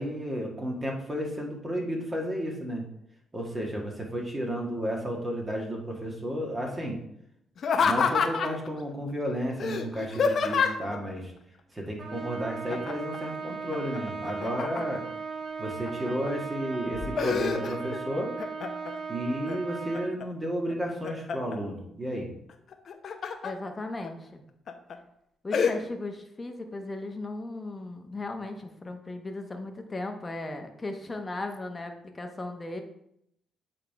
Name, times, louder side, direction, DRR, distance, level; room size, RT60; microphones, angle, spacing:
voice 1, 0.0-2.8 3.3-7.0 7.8-11.3 11.7-15.0 15.6-18.3 19.1-22.3, equal, 20° right, 0 dB, 1.7 m, -32 dB
Laughter, 7.6-8.7 9.6-11.0 12.7-13.2 13.5-15.1 15.7-16.3 16.7-18.0 18.4-19.0 19.5-20.2 20.7-21.6 22.7-23.5 24.0-24.1 24.7-24.9 25.5-25.7, left 6 dB, 55° left, 0.7 m, -28 dB
Trumpet, 12.0-20.2, right 5 dB, 60° right, 1.8 m, -37 dB
voice 2, 23.4-24.4 25.4-32.8, left 2 dB, 25° left, 5 dB, 1.1 m, -37 dB
8.1 x 3.8 x 4.7 m, 0.76 s
cardioid pair, 90°, 0 cm